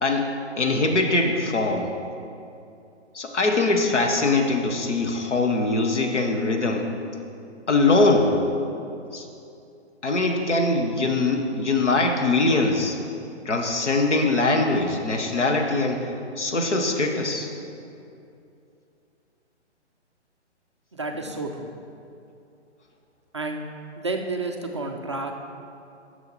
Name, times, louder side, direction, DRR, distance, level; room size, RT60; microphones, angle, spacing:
voice 1, 0.6-1.9 3.1-6.9 7.7-8.3 9.1-9.3 10.0-13.0 13.4-16.1 16.4-17.5, left 3 dB, 80° left, 3 dB, 1.3 m, -22 dB
voice 2, 20.9-21.7 23.3-23.7 24.0-25.3, right 2 dB, 25° right, 2 dB, 0.3 m, -30 dB
10.5 x 6.9 x 4.3 m, 2.7 s
figure-of-eight pair, 130°, 35 cm